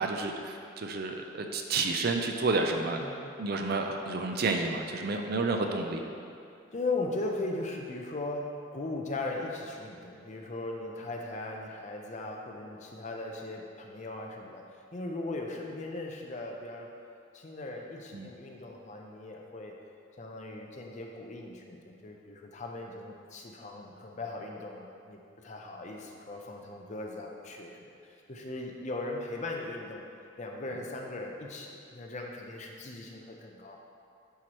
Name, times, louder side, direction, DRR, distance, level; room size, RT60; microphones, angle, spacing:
voice 1, 0.0-3.0 3.4-6.0 18.1-18.3, right 3 dB, 50° right, 4 dB, 0.5 m, -30 dB
voice 2, 3.0-3.3 6.7-14.7 14.9-16.9 17.3-19.8 20.2-30.0 30.4-33.8, left 2 dB, 35° left, 1 dB, 0.6 m, -38 dB
10.0 x 4.7 x 3.0 m, 2.6 s
head